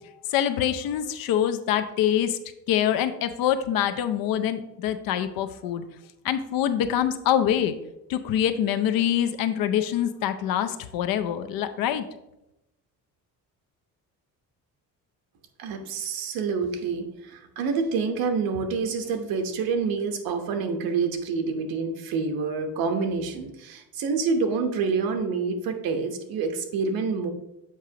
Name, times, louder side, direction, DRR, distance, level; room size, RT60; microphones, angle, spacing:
voice 1, 0.3-2.4 2.7-5.8 6.2-7.7 8.1-12.1, left 10 dB, 80° left, 10 dB, 0.6 m, -25 dB
voice 2, 15.6-27.3, right 5 dB, 80° right, 6 dB, 1.0 m, -27 dB
7.5 x 4.9 x 2.8 m, 0.89 s
cardioid pair, 160°, 35 cm